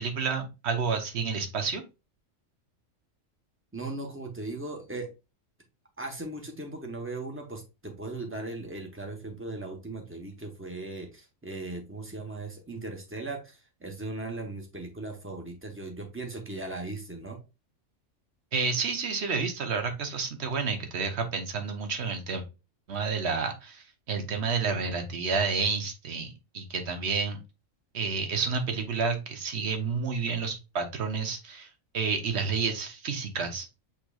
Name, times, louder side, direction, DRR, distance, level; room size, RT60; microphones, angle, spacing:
voice 1, 0.0-1.8 18.5-22.4 22.9-27.4 27.9-31.7 31.9-33.7, right 5 dB, 60° right, 6 dB, 1.1 m, -30 dB
voice 2, 3.7-5.1 6.0-17.4, right 2 dB, 10° right, 2 dB, 0.8 m, -38 dB
7.0 x 3.0 x 2.3 m, 0.28 s
omnidirectional pair, 1.4 m